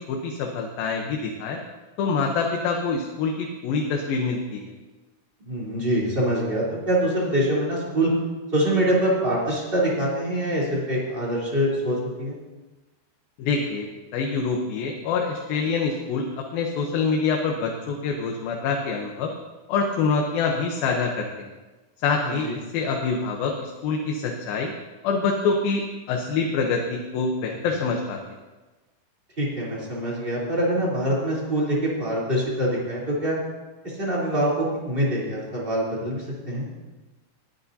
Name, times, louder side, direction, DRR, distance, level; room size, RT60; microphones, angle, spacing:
voice 1, 0.1-1.6 2.0-4.7 13.4-13.9 14.1-19.3 19.7-21.2 22.0-22.5 22.7-24.7 25.0-28.2, left 4 dB, 80° left, 1 dB, 2.8 m, -25 dB
voice 2, 5.5-8.1 8.5-12.4 22.2-22.5 29.4-33.4 33.8-36.7, right 1 dB, 15° right, -6 dB, 3.2 m, -24 dB
20.5 x 10.5 x 2.8 m, 1.2 s
omnidirectional pair, 4.2 m